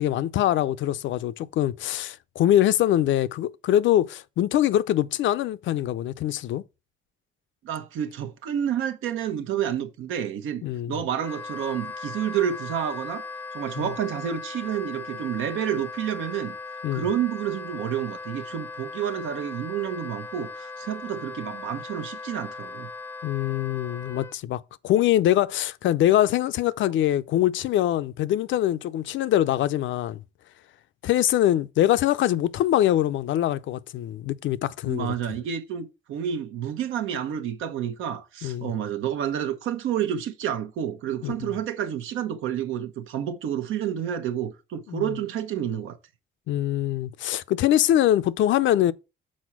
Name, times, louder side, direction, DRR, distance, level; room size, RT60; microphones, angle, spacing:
voice 1, 0.0-6.6 10.6-11.0 13.8-13.9 16.8-17.0 23.2-30.2 31.0-35.1 38.4-38.7 41.2-41.5 44.9-45.1 46.5-48.9, left 12 dB, 75° left, 0.5 m, -23 dB
voice 2, 7.6-10.6 10.9-13.3 13.5-16.6 16.9-22.9 34.9-46.0, right 9 dB, 85° right, 1.0 m, -29 dB
Wind instrument woodwind instrument, 11.1-24.3, left 4 dB, 10° left, 0.5 m, -38 dB
6.3 x 4.3 x 6.0 m
cardioid pair, 90°, 20 cm